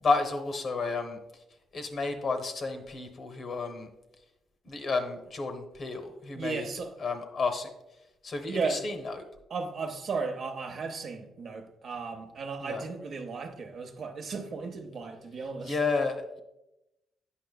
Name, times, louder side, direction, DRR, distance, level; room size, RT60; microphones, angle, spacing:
voice 1, 0.0-1.2 1.7-3.9 4.6-6.7 7.0-7.7 8.2-9.3 12.6-12.8 15.7-16.4, left 4 dB, 50° left, 7 dB, 0.8 m, -31 dB
voice 2, 6.3-6.9 8.5-8.8 9.5-15.8, right 4 dB, 55° right, 5 dB, 0.8 m, -35 dB
8.2 x 5.6 x 2.3 m, 0.95 s
cardioid pair, 90°, 0 cm